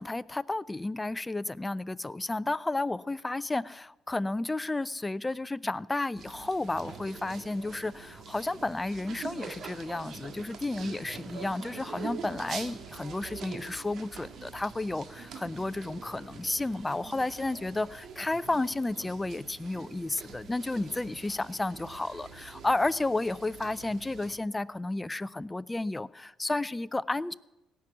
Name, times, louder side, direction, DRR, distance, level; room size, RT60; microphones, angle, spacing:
voice 1, 0.0-27.3, left 2 dB, 15° left, 0.5 m, -32 dB
sound 1, 6.2-24.4, right 5 dB, 60° right, 1.6 m, -45 dB
17.0 x 6.0 x 9.9 m
cardioid pair, 85°, 0 cm